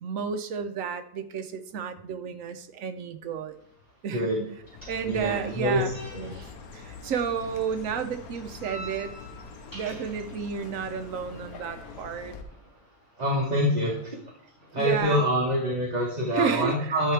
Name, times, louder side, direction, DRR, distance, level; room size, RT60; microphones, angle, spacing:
voice 1, 0.0-3.6 4.0-4.3 4.9-5.9 6.3-9.1 9.7-12.4 14.8-15.2 16.3-17.1, right 7 dB, 65° right, 8 dB, 1.1 m, -32 dB
sound 1, 3.5-15.0, equal, 10° left, 4.3 m, -49 dB
voice 2, 4.1-4.4 5.0-5.8 6.1-6.3 13.2-13.9 14.7-17.1, equal, 30° right, -3 dB, 1.5 m, -25 dB
Chirp tweet, 4.6-12.4, left 5 dB, 80° left, 1.4 m, -44 dB
13.0 x 5.7 x 3.3 m, 0.67 s
omnidirectional pair, 1.5 m